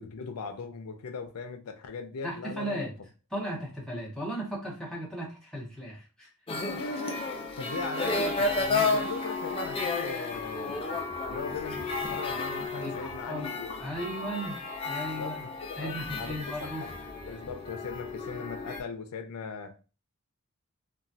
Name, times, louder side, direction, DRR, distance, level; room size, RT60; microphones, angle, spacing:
voice 1, 0.0-2.9 6.5-10.8 11.3-14.0 15.2-16.9 17.3-19.8, left 4 dB, 85° left, 0.5 m, -39 dB
voice 2, 2.2-2.9 3.3-6.3 12.5-13.5 13.8-15.5 15.8-16.9, right 1 dB, 5° left, 0.8 m, -36 dB
sound 1, 6.5-18.8, left 3 dB, 25° left, 0.4 m, -32 dB
3.0 x 2.2 x 2.6 m
head